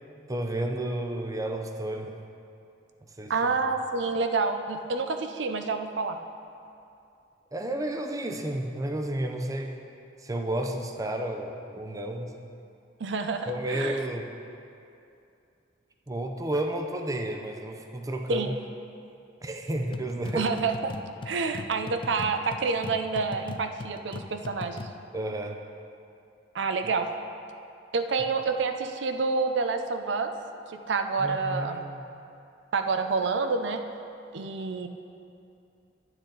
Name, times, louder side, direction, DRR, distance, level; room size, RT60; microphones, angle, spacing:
voice 1, 0.3-2.1 3.2-3.3 7.5-9.8 10.2-12.3 13.5-14.3 16.1-18.5 19.4-20.5 25.1-25.6 31.2-32.0, right 1 dB, 20° right, 3 dB, 0.6 m, -31 dB
voice 2, 3.3-6.2 13.0-14.0 18.3-18.6 20.3-20.7 21.3-24.9 26.5-27.1 27.9-30.3 30.7-31.8 32.7-33.8 34.3-34.9, right 4 dB, 75° right, 7 dB, 0.5 m, -28 dB
sound 1, 19.9-25.0, left 3 dB, 30° left, 0.3 m, -40 dB
10.0 x 8.9 x 3.9 m, 2.6 s
head